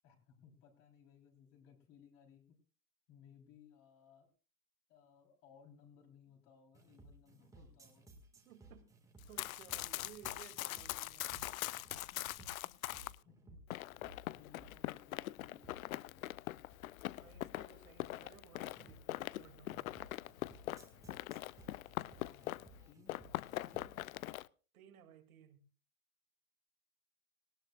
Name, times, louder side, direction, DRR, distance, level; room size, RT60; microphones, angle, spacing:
voice 1, 0.0-2.6 3.1-4.3 4.9-8.1 11.3-11.5 11.9-13.9 14.4-16.4 21.7-22.5 22.9-23.9, left 7 dB, 30° left, 3.9 m, -63 dB
sound 1, 6.7-24.0, right 2 dB, 5° right, 2.0 m, -60 dB
voice 2, 8.4-8.9 9.3-11.3 17.1-19.9 24.7-25.6, right 8 dB, 65° right, 2.7 m, -59 dB
Run, 9.2-13.2 13.7-22.8 23.1-24.5, left 16 dB, 65° left, 0.5 m, -42 dB
19.0 x 17.0 x 2.4 m
hypercardioid pair, 150°, 45 cm